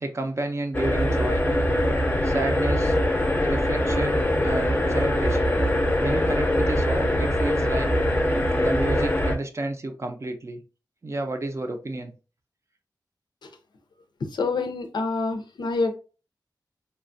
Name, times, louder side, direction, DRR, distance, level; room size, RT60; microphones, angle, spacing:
voice 1, 0.0-1.4 2.2-3.0 3.4-5.6 6.0-7.9 8.6-10.6 11.0-12.1, right 2 dB, 40° right, 5 dB, 0.5 m, -31 dB
sound 1, 0.7-9.4, left 1 dB, 20° left, 0.5 m, -23 dB
voice 2, 14.2-16.0, left 3 dB, 75° left, 6 dB, 0.5 m, -27 dB
3.1 x 2.2 x 2.5 m, 0.34 s
wide cardioid pair, 105°, 8 cm